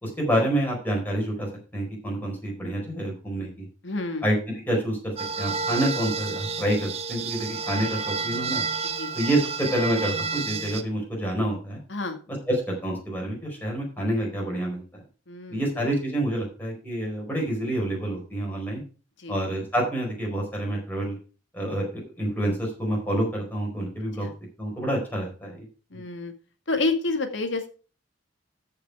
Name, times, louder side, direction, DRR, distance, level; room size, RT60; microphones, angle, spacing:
voice 1, 0.0-3.7 4.2-4.4 4.7-8.6 9.1-11.8 12.5-14.8 15.5-18.8 19.3-21.2 21.5-24.3 24.6-25.7, right 1 dB, 10° left, -1 dB, 4.4 m, -28 dB
voice 2, 3.8-4.3 8.9-9.2 11.9-12.2 15.3-15.8 19.2-19.4 24.2-24.3 25.9-26.3 26.7-27.7, left 3 dB, 80° left, 6 dB, 1.9 m, -29 dB
sound 1, 5.2-10.8, right 5 dB, 35° right, 0.9 m, -30 dB
13.5 x 5.9 x 4.7 m, 0.36 s
head